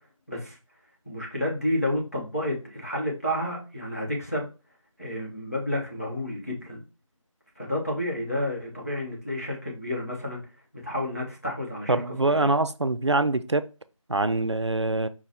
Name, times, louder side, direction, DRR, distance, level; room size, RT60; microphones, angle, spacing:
voice 1, 0.3-0.6 1.1-4.5 5.0-6.8 7.6-10.4 10.8-12.5, left 1 dB, 25° left, 0.8 m, -30 dB
voice 2, 11.9-13.7 14.1-15.1, right 2 dB, 55° right, 0.4 m, -24 dB
5.6 x 2.2 x 4.2 m
figure-of-eight pair, 175°, 18 cm